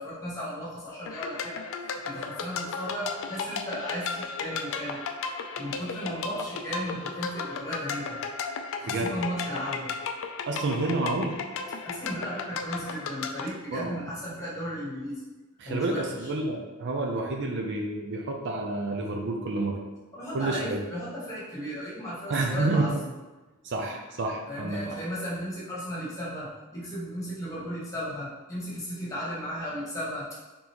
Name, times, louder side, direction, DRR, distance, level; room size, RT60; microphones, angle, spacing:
voice 1, 0.0-1.6 2.0-5.0 5.6-8.2 8.8-9.9 11.8-15.2 15.6-16.3 20.1-22.9 24.5-30.3, equal, 15° left, -8 dB, 1.4 m, -35 dB
sound 1, 1.0-13.5, left 5 dB, 65° left, 0.4 m, -35 dB
voice 2, 8.9-9.2 10.5-11.4 13.7-14.0 15.6-19.8 20.3-20.8 22.3-23.0 23.6-25.0, right 2 dB, 55° right, 2 dB, 0.5 m, -29 dB
4.0 x 3.6 x 2.9 m, 1.2 s
head